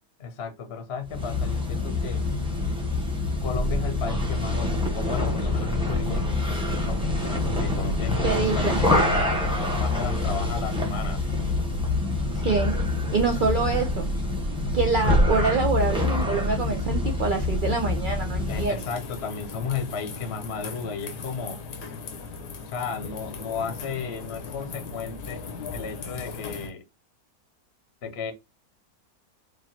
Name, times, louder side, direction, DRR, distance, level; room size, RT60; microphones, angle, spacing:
voice 1, 0.2-2.2 3.4-9.4 9.7-11.2 18.5-21.6 22.6-25.4 25.7-26.8 28.0-28.3, left 5 dB, 50° left, 0.9 m, -34 dB
sound 1, 1.0-18.8, left 2 dB, 5° right, 0.8 m, -26 dB
voice 2, 8.2-8.8 12.3-12.7 13.1-14.1 14.7-18.8, right 4 dB, 65° right, 0.5 m, -25 dB
sound 2, 18.5-26.7, left 4 dB, 85° left, 1.4 m, -38 dB
4.9 x 2.6 x 2.8 m
omnidirectional pair, 1.7 m